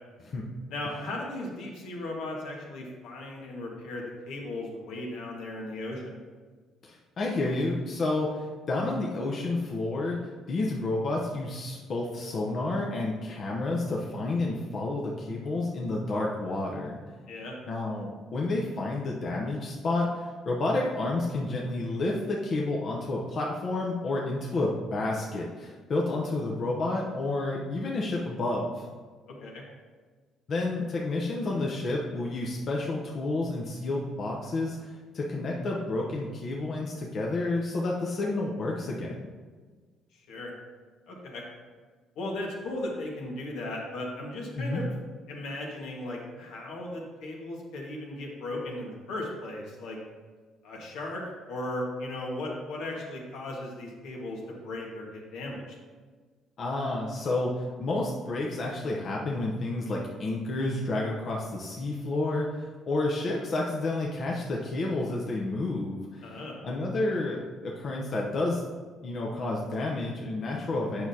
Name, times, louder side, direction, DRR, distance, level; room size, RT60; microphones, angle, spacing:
voice 1, 0.7-6.1 17.3-17.6 29.3-29.6 40.3-40.5 41.1-41.4 42.1-44.9 45.3-50.0 50.6-51.2 51.5-55.8 66.2-66.6, left 1 dB, 80° left, -1 dB, 1.5 m, -36 dB
voice 2, 6.8-10.2 10.5-17.0 17.7-28.8 30.5-34.8 35.1-39.3 44.6-44.8 56.6-66.3 66.6-68.6 69.0-71.1, left 2 dB, 40° left, -2 dB, 0.7 m, -30 dB
8.4 x 6.1 x 2.8 m, 1.4 s
cardioid pair, 150°, 0 cm